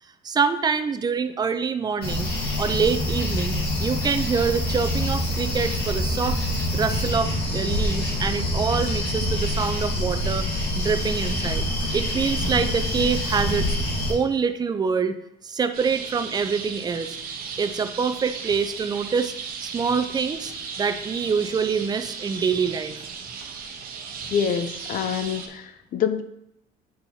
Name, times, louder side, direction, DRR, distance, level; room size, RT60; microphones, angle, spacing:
voice 1, 0.2-2.3 2.6-6.4 6.7-10.5 10.8-11.7 11.9-13.8 14.1-15.2 15.4-17.2 17.6-19.3 19.6-23.0, right 5 dB, 25° right, 10 dB, 0.5 m, -25 dB
sound 1, 2.0-14.1, left 1 dB, 75° left, 1.6 m, -26 dB
sound 2, 15.7-25.5, right 6 dB, 60° right, 0.9 m, -36 dB
voice 2, 24.3-26.2, left 7 dB, 55° left, 11 dB, 0.5 m, -26 dB
8.6 x 4.4 x 2.8 m, 0.78 s
cardioid pair, 110°, 17 cm